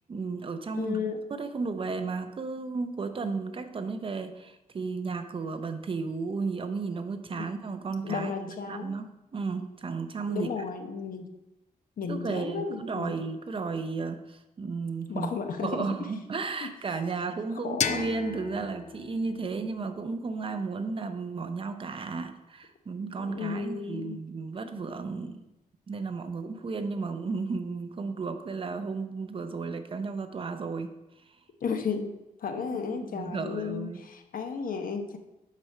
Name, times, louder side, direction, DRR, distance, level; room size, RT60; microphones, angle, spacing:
voice 1, 0.1-1.0 1.3-9.1 9.3-10.5 12.1-15.3 15.6-25.4 25.9-30.9 32.9-34.0, right 4 dB, 35° right, 8 dB, 0.6 m, -33 dB
voice 2, 0.7-1.2 7.4-7.5 8.0-9.0 10.3-11.3 12.0-13.2 15.1-15.9 16.6-16.7 17.6-18.1 23.2-24.2 31.6-35.2, left 5 dB, 65° left, 6 dB, 0.9 m, -33 dB
sound 1, 17.8-20.6, left 7 dB, 50° left, 0.4 m, -35 dB
7.4 x 4.9 x 5.4 m, 0.94 s
wide cardioid pair, 165°, 15 cm